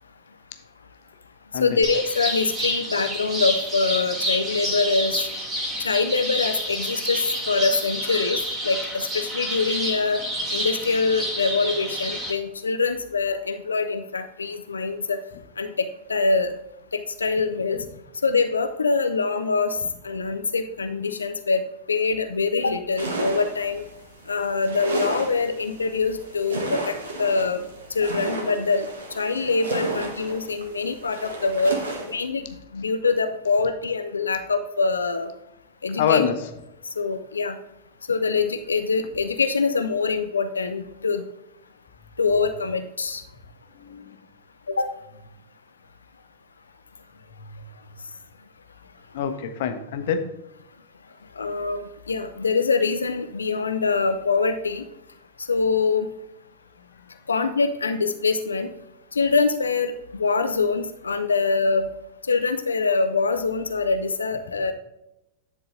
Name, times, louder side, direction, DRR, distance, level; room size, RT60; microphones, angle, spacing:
voice 1, 1.6-5.3 5.8-10.2 10.5-15.2 15.6-16.5 16.9-17.8 18.2-19.8 20.0-21.6 21.9-23.8 24.3-27.6 27.9-28.9 29.1-31.8 32.1-32.4 32.7-35.3 35.8-36.3 37.0-37.6 38.1-41.2 42.2-43.2 44.7-44.9 51.4-51.8 52.1-54.8 55.5-56.1 57.3-58.7 59.1-61.9 62.3-64.7, left 4 dB, 75° left, 8 dB, 0.4 m, -24 dB
sound 1, 1.8-12.3, equal, 25° right, 2.1 m, -29 dB
sound 2, 23.0-32.1, right 2 dB, 70° right, 1.2 m, -33 dB
voice 2, 36.0-36.4 43.7-44.2 49.1-50.2, left 8 dB, 55° left, 7 dB, 0.8 m, -25 dB
10.5 x 3.9 x 3.6 m, 0.89 s
figure-of-eight pair, 90°, 0 cm